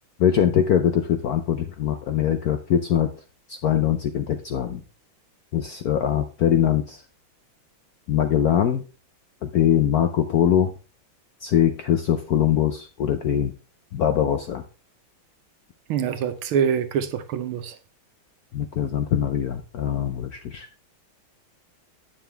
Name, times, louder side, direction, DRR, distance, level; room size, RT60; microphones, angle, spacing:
voice 1, 0.2-3.1 3.5-4.8 5.5-7.0 8.1-8.8 9.4-10.7 11.4-13.5 13.9-14.6 18.5-20.7, left 9 dB, 70° left, 0.9 m, -22 dB
voice 2, 15.9-17.7, right 8 dB, 80° right, 1.7 m, -25 dB
9.2 x 7.0 x 3.3 m
omnidirectional pair, 2.3 m